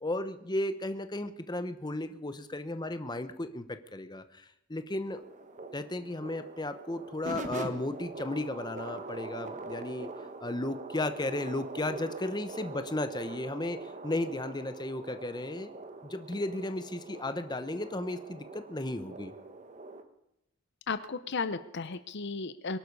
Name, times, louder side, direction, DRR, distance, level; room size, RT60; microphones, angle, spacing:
voice 1, 0.0-5.2 5.7-10.1 10.4-19.3, left 2 dB, 20° left, 10 dB, 1.0 m, -35 dB
sound 1, 5.1-20.0, right 2 dB, 35° right, 1.3 m, -43 dB
voice 2, 20.9-22.8, left 4 dB, 55° left, 13 dB, 0.7 m, -34 dB
22.5 x 11.5 x 5.4 m, 0.85 s
head